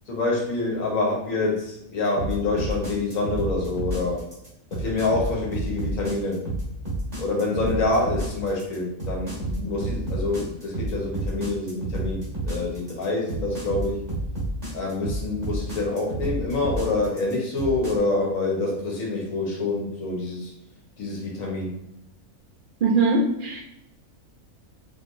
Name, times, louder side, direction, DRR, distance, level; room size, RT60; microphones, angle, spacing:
voice 1, 0.1-4.2 4.7-6.4 7.2-14.0 14.7-20.5 21.0-21.7, left 2 dB, 65° left, -2 dB, 1.5 m, -26 dB
sound 1, 2.2-17.9, right 2 dB, 30° right, 1.4 m, -30 dB
voice 2, 22.8-23.6, right 3 dB, 45° right, 0 dB, 0.7 m, -21 dB
4.4 x 3.3 x 2.6 m, 0.82 s
omnidirectional pair, 1.5 m